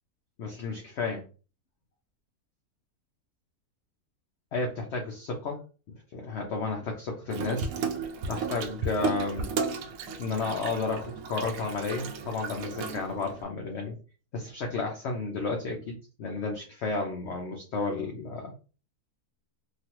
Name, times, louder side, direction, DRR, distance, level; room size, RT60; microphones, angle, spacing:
voice 1, 0.4-1.2 4.5-5.6 6.1-7.7 8.3-9.5 10.2-13.9 14.3-18.5, left 3 dB, 60° left, 1 dB, 0.7 m, -32 dB
Water tap faucet / Sink (filling or washing), 7.3-13.4, right 5 dB, 70° right, 0.9 m, -34 dB
3.1 x 2.4 x 2.9 m, 0.35 s
omnidirectional pair, 1.6 m